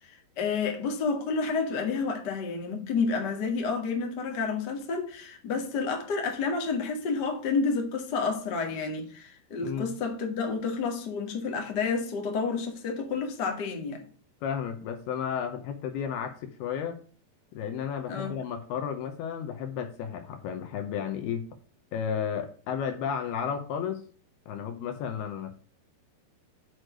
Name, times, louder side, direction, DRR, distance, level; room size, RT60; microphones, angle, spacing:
voice 1, 0.0-14.0 18.1-18.3, left 4 dB, 60° left, 1.1 m, -30 dB
voice 2, 9.6-9.9 14.4-17.0 17.5-21.5 21.9-24.0 24.5-25.6, left 8 dB, 80° left, 2.5 m, -33 dB
6.5 x 6.3 x 6.2 m
omnidirectional pair, 5.2 m